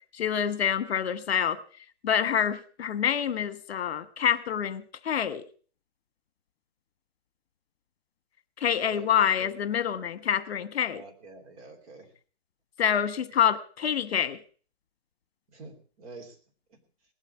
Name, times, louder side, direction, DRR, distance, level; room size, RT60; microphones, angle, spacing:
voice 1, 0.1-1.6 2.0-5.4 8.6-11.0 12.8-14.4, left 8 dB, 65° left, 12 dB, 1.3 m, -27 dB
voice 2, 10.9-12.1 15.5-16.4 16.7-16.8, right 3 dB, 35° right, 4 dB, 3.0 m, -46 dB
19.0 x 8.3 x 7.1 m, 0.43 s
hypercardioid pair, 165°, 33 cm